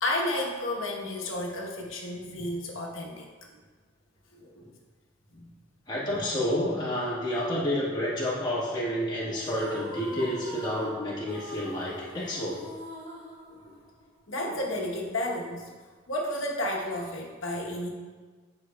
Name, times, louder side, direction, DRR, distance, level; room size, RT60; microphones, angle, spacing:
voice 1, 0.0-3.3 4.3-4.7 5.3-5.5 6.0-6.2 14.3-15.6 16.1-17.9, left 1 dB, 90° left, -1 dB, 1.0 m, -32 dB
voice 2, 5.9-12.6, equal, 20° left, -7 dB, 1.3 m, -29 dB
sound 1, 9.4-14.2, equal, 25° right, 1.9 m, -43 dB
9.4 x 5.0 x 2.2 m, 1.4 s
head